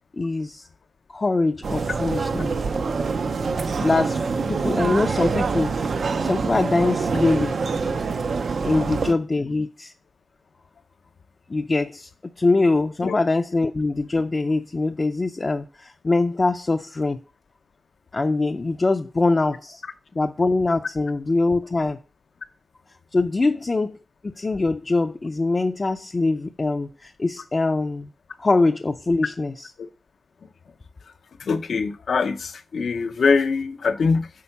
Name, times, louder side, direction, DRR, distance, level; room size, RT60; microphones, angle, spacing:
voice 1, 0.1-0.7 1.1-2.6 3.8-5.9 6.2-7.5 8.6-9.9 11.5-12.1 12.4-17.2 18.1-19.8 20.2-22.0 23.1-24.0 24.2-28.1 28.4-29.7, left 3 dB, 35° left, 0.5 m, -23 dB
sound 1, 1.6-9.1, right 4 dB, 75° right, 0.6 m, -25 dB
voice 2, 31.4-34.3, left 4 dB, 85° left, 0.7 m, -23 dB
8.4 x 4.4 x 5.7 m
wide cardioid pair, 105°, 0 cm